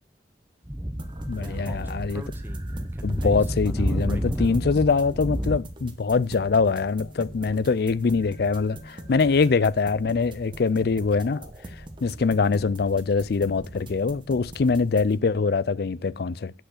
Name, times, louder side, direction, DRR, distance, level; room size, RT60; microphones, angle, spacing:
Speech / Wind, 0.6-5.6, equal, 10° right, 0.8 m, -29 dB
sound 1, 1.0-15.1, right 1 dB, 25° right, 1.1 m, -42 dB
voice 1, 1.3-2.2 3.0-11.5 12.0-16.5, left 4 dB, 60° left, 0.4 m, -23 dB
8.0 x 6.3 x 6.6 m
head